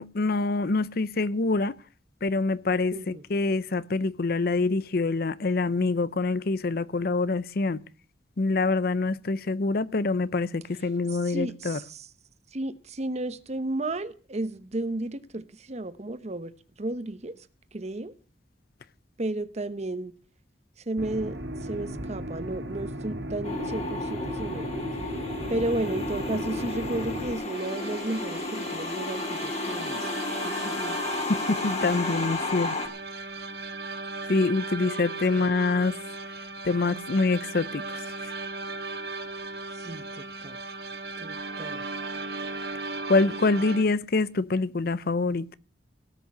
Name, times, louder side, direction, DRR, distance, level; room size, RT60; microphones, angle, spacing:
voice 1, 0.0-1.7 2.2-7.8 8.4-11.8 31.3-32.8 34.3-36.0 36.6-38.3 43.1-45.5, left 3 dB, 60° left, 0.6 m, -25 dB
voice 2, 2.9-3.2 11.1-12.1 12.5-16.5 16.8-17.4 17.7-18.1 19.2-20.1 20.9-24.7 25.5-30.1 30.4-31.0 35.4-35.5 39.8-40.6 41.2-41.8, right 2 dB, 40° right, 0.9 m, -33 dB
sound 1, 21.0-27.3, right 1 dB, 80° right, 1.6 m, -35 dB
sound 2, 23.4-32.9, left 2 dB, 40° left, 2.5 m, -33 dB
sound 3, 27.5-43.8, right 3 dB, 65° right, 1.5 m, -37 dB
18.0 x 6.5 x 8.4 m
head